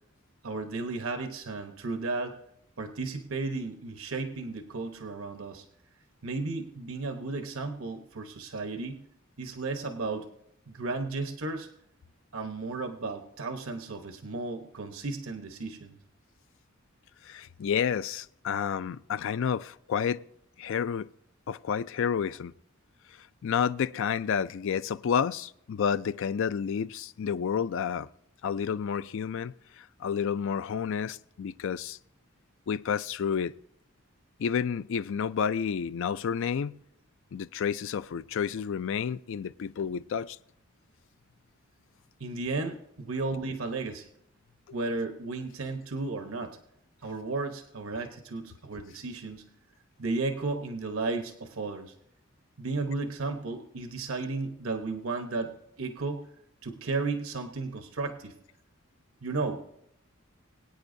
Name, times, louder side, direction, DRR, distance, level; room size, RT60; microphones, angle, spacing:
voice 1, 0.4-2.3 2.8-5.6 6.2-9.0 9.4-10.3 10.7-11.7 12.3-16.0 42.2-44.1 44.7-46.5 47.0-49.5 50.0-51.9 52.6-56.2 56.6-58.3 59.2-59.7, right 3 dB, 80° right, 1.0 m, -34 dB
voice 2, 17.3-20.2 20.6-21.1 21.5-22.5 23.4-28.1 28.4-32.0 32.7-33.5 34.4-36.8 37.3-40.4, left 7 dB, 65° left, 0.4 m, -30 dB
22.0 x 9.1 x 2.6 m
head